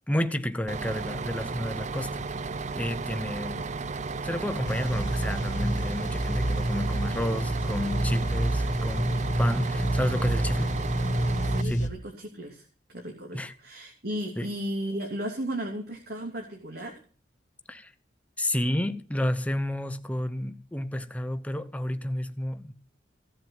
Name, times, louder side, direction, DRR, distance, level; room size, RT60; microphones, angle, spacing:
voice 1, 0.1-2.2 2.8-3.7 4.2-10.7 11.6-11.9 13.3-13.5 14.4-14.5 17.7-17.9 18.4-22.7, left 1 dB, 10° left, 1.0 m, -31 dB
Bus, 0.7-11.6, right 4 dB, 40° right, 0.6 m, -34 dB
sound 1, 4.6-11.9, right 1 dB, 45° left, 1.6 m, -28 dB
voice 2, 11.4-12.7 12.9-16.9, right 1 dB, 60° right, 2.9 m, -35 dB
16.5 x 7.6 x 7.9 m
head